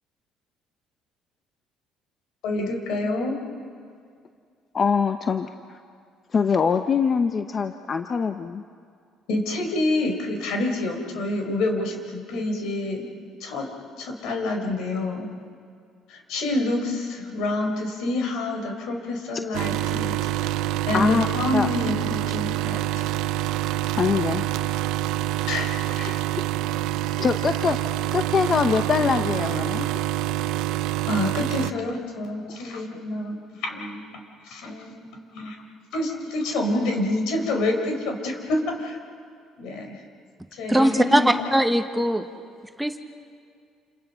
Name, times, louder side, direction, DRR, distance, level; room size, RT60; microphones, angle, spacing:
voice 1, 2.4-3.4 9.3-13.1 13.4-13.7 14.0-15.3 16.1-20.3 20.8-23.1 25.5-26.2 31.0-34.1 34.4-35.6 35.9-39.0 39.6-40.0 40.5-41.3, left 2 dB, 75° left, 3 dB, 4.8 m, -27 dB
voice 2, 4.7-5.8 6.3-8.6 20.9-21.3 21.5-21.7 24.0-24.4 27.2-27.8 28.1-29.9, left 5 dB, 35° left, 7 dB, 0.8 m, -23 dB
sound 1, 19.5-31.7, right 14 dB, 85° right, 0.6 m, -26 dB
voice 3, 40.7-42.3 42.8-43.0, right 1 dB, 5° right, 6 dB, 1.2 m, -20 dB
29.5 x 28.5 x 5.7 m, 2.3 s
cardioid pair, 120°, 0 cm